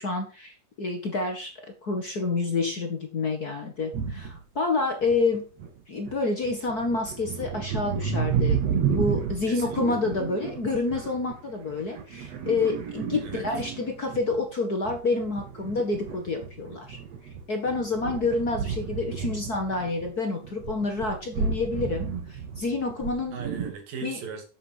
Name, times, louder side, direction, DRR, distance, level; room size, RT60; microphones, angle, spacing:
voice 1, 0.0-5.4 5.9-17.0 17.5-23.4 24.0-24.2, left 3 dB, 50° left, 4 dB, 1.1 m, -28 dB
sound 1, 3.9-4.4 5.0-5.7 6.0-14.5 14.8-20.1 20.4-23.7, right 6 dB, 55° right, 2.6 m, -32 dB
voice 2, 9.5-10.0 13.2-13.5 23.3-24.5, right 5 dB, 80° right, 4 dB, 4.3 m, -38 dB
12.5 x 7.3 x 4.7 m, 0.34 s
omnidirectional pair, 4.0 m